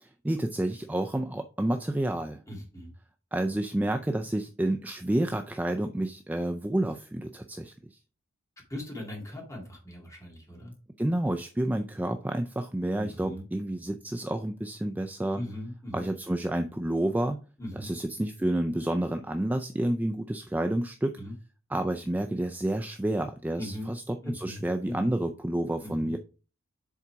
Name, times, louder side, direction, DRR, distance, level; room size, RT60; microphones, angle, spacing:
voice 1, 0.0-2.4 3.3-8.0 11.0-15.4 15.9-17.4 17.7-21.2 21.7-26.2, right 1 dB, 10° right, 6 dB, 0.4 m, -29 dB
voice 2, 2.5-2.9 8.7-10.7 13.0-13.4 15.3-16.1 17.6-17.9 21.2-21.3 23.5-23.9 24.2-25.1 25.8-26.2, left 1 dB, 15° left, 0 dB, 2.2 m, -39 dB
7.3 x 4.0 x 4.6 m, 0.35 s
head